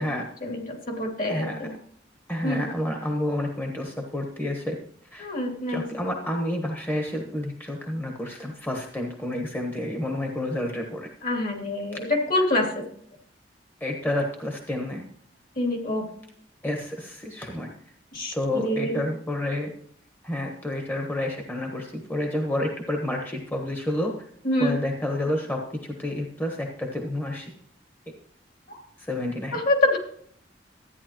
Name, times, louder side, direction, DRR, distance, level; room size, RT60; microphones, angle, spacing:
voice 1, 0.4-1.7 2.4-2.7 5.2-5.9 11.2-12.8 15.6-16.1 18.1-19.0 24.4-24.8 28.7-28.8 29.5-30.0, left 1 dB, 50° left, 1 dB, 2.8 m, -26 dB
voice 2, 1.3-1.6 2.3-4.8 5.1-5.3 5.7-11.1 13.8-15.0 16.6-17.7 18.3-19.7 20.2-24.1 24.6-27.5 29.0-29.6, left 1 dB, 10° left, 2 dB, 1.2 m, -29 dB
14.0 x 9.6 x 3.0 m, 0.63 s
head